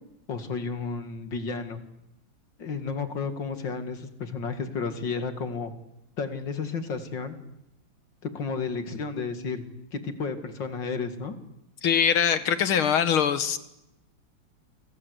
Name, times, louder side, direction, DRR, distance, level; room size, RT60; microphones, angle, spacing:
voice 1, 0.3-1.8 2.6-5.7 6.2-7.4 8.2-9.6 9.9-11.4, left 5 dB, 60° left, 9 dB, 2.9 m, -32 dB
voice 2, 11.8-13.6, left 8 dB, 80° left, 12 dB, 2.4 m, -22 dB
29.0 x 24.5 x 8.1 m, 0.86 s
omnidirectional pair, 2.3 m